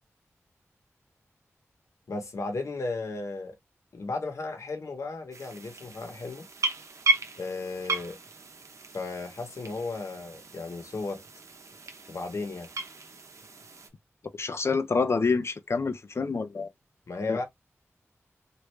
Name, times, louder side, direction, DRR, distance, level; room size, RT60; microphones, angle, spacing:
voice 1, 2.1-3.5 3.9-6.5 7.4-8.2 8.9-11.2 12.1-12.7 17.1-17.4, left 3 dB, 75° left, 1.0 m, -34 dB
sound 1, 5.3-13.9, right 2 dB, 80° right, 0.8 m, -35 dB
voice 2, 14.4-16.7 17.3-17.4, left 4 dB, 60° left, 0.6 m, -27 dB
3.2 x 2.5 x 3.1 m
wide cardioid pair, 60°, 5 cm